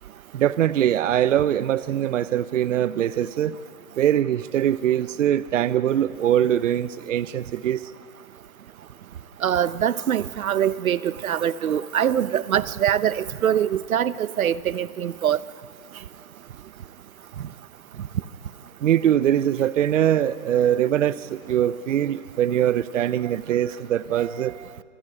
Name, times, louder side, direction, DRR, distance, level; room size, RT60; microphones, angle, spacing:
voice 1, 0.3-3.6 4.0-7.9 18.8-24.7, right 10 dB, 65° right, 16 dB, 0.8 m, -22 dB
voice 2, 9.4-15.4, right 10 dB, 85° right, 16 dB, 1.0 m, -23 dB
26.0 x 21.5 x 9.9 m, 2.2 s
hypercardioid pair, 165°, 41 cm